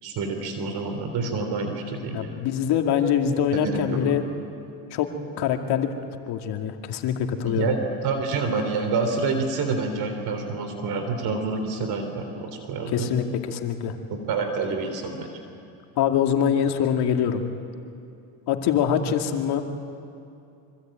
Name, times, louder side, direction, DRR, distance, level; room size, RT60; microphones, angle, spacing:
voice 1, 0.0-2.3 3.5-4.3 7.4-13.1 14.1-15.4, right 4 dB, 60° right, 6 dB, 3.7 m, -28 dB
voice 2, 2.1-4.2 4.9-5.1 5.4-5.9 6.3-7.7 12.9-13.9 16.0-17.4 18.5-19.6, left 8 dB, 60° left, 4 dB, 2.5 m, -24 dB
25.0 x 25.0 x 9.1 m, 2.6 s
supercardioid pair, 100°, 43 cm